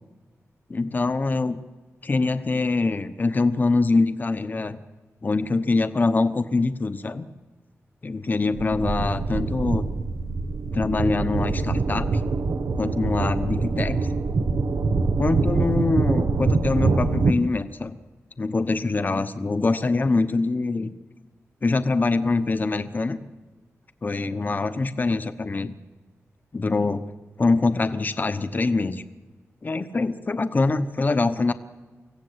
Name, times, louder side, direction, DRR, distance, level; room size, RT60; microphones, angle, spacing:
voice 1, 0.7-1.6 2.0-4.8 5.2-7.2 8.0-9.9 10.7-12.2 12.8-14.0 15.2-17.9 18.4-20.9 21.6-23.2 24.0-25.7 26.5-27.0 27.4-29.0 29.6-31.5, left 3 dB, 35° left, 11 dB, 1.0 m, -24 dB
sound 1, 8.5-17.3, right 3 dB, 80° right, 1.2 m, -24 dB
25.0 x 16.5 x 8.1 m, 1.3 s
wide cardioid pair, 125°, 5 cm